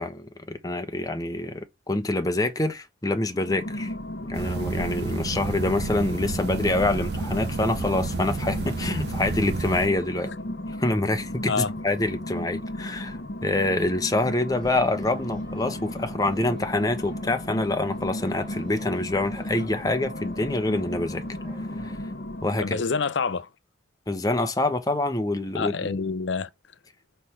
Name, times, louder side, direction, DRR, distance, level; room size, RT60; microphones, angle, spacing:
voice 1, 0.0-3.9 4.3-10.3 10.7-21.2 21.8-22.0 22.4-22.8 24.1-26.0, left 2 dB, 20° left, 1.0 m, -26 dB
sound 1, 3.3-23.0, left 1 dB, 60° left, 1.0 m, -35 dB
sound 2, 4.3-9.9, right 3 dB, 60° right, 0.5 m, -31 dB
sound 3, 14.5-22.0, right 1 dB, 25° right, 3.6 m, -47 dB
voice 2, 22.6-23.5 25.5-26.5, left 4 dB, 85° left, 0.6 m, -27 dB
6.2 x 3.5 x 5.6 m
head